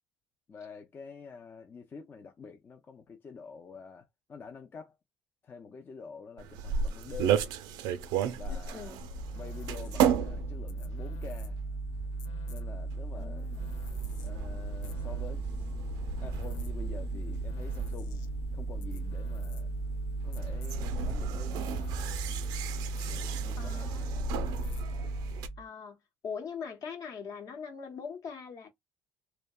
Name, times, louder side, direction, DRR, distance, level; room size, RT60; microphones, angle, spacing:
voice 1, 0.5-5.0 5.4-7.4 8.3-8.9 9.3-11.6 12.5-13.5 14.2-15.7 16.2-18.2 18.5-19.8 20.2-22.2 23.1-24.3, left 5 dB, 30° left, 0.4 m, -47 dB
sound 1, 6.4-25.5, right 7 dB, 75° right, 0.4 m, -35 dB
voice 2, 8.5-9.0 13.1-13.6 23.6-24.1 25.6-26.0 26.2-28.7, left 6 dB, 55° left, 0.9 m, -41 dB
sound 2, 9.1-25.6, right 3 dB, 90° left, 0.5 m, -36 dB
2.7 x 2.0 x 2.3 m
cardioid pair, 105°, 7 cm